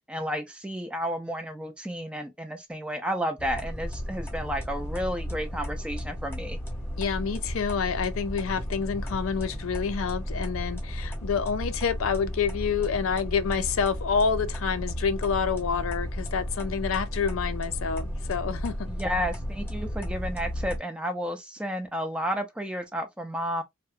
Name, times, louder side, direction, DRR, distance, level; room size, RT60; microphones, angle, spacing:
voice 1, 0.1-6.6 18.9-23.6, equal, 5° right, 0.3 m, -32 dB
sound 1, 3.4-20.8, equal, 10° left, 0.8 m, -34 dB
voice 2, 7.0-18.9, left 6 dB, 85° left, 0.4 m, -28 dB
2.7 x 2.1 x 2.4 m
head